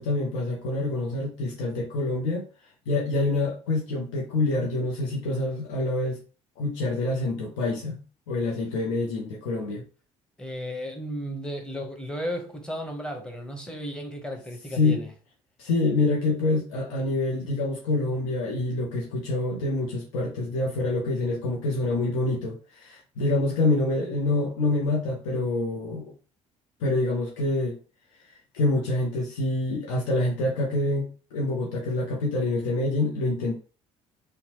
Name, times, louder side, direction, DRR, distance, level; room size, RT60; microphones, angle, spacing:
voice 1, 0.0-2.4 2.9-6.2 6.6-8.0 8.3-9.8 14.8-15.0 15.6-26.1 26.8-27.8 28.5-33.5, left 2 dB, 70° left, 0.7 m, -26 dB
voice 2, 10.4-15.1, equal, 5° left, 0.9 m, -34 dB
2.8 x 2.2 x 2.9 m
figure-of-eight pair, 55°, 18 cm